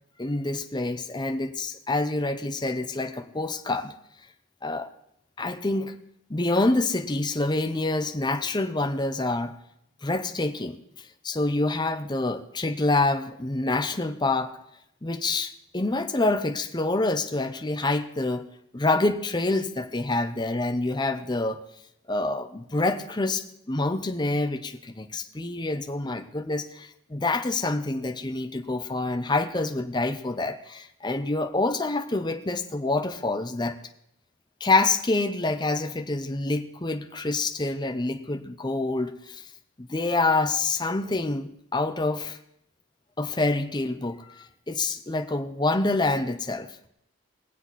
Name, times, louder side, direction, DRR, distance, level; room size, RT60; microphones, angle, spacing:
voice 1, 0.2-3.9 4.6-4.9 5.4-6.0 6.3-9.5 10.0-14.5 15.0-18.4 18.7-21.6 22.1-33.8 34.6-39.5 39.8-42.4 43.2-46.7, left 2 dB, 20° left, 6 dB, 0.7 m, -27 dB
21.0 x 8.0 x 4.1 m, 0.75 s
head